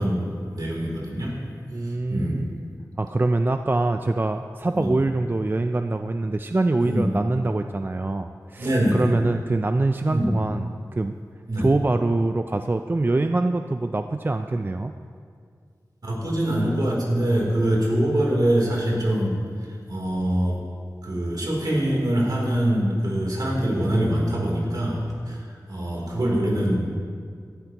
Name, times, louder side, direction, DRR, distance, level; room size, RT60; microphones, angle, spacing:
voice 1, 0.0-1.4 1.8-2.4 4.7-4.9 6.8-7.1 8.6-9.1 10.1-10.4 11.5-11.7 16.0-19.4 19.9-20.6 21.0-25.4 25.7-27.0, right 1 dB, 65° right, -3 dB, 3.2 m, -24 dB
voice 2, 1.7-2.5 3.0-11.2 11.6-14.9, right 2 dB, 30° right, 7 dB, 0.4 m, -24 dB
17.0 x 12.0 x 2.9 m, 2.2 s
wide cardioid pair, 75°, 7 cm